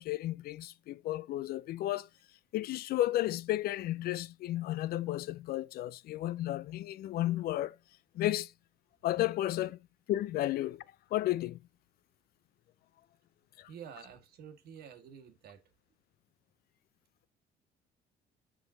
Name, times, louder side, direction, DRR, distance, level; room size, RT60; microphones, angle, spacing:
voice 1, 0.0-2.1 2.5-7.8 8.1-8.5 9.0-9.8 10.1-10.8 11.1-11.6 13.6-13.7, left 14 dB, 65° left, 0.4 m, -33 dB
voice 2, 13.7-15.6, right 8 dB, 70° right, 1.5 m, -49 dB
6.5 x 5.6 x 3.8 m
cardioid pair, 110°, 17 cm